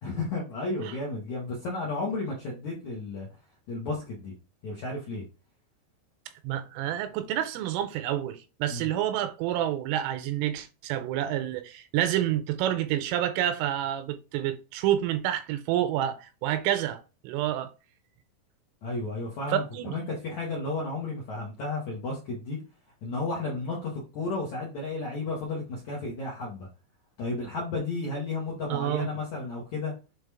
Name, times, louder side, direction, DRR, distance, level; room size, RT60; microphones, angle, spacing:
voice 1, 0.0-3.3 3.7-4.3 4.6-5.2 8.7-8.9 18.8-22.6 23.0-26.7 27.2-29.9, left 3 dB, 65° left, 1.8 m, -33 dB
voice 2, 6.4-17.7 19.5-20.0 28.7-29.1, right 12 dB, 85° right, 3.1 m, -28 dB
7.9 x 4.0 x 3.5 m
omnidirectional pair, 6.0 m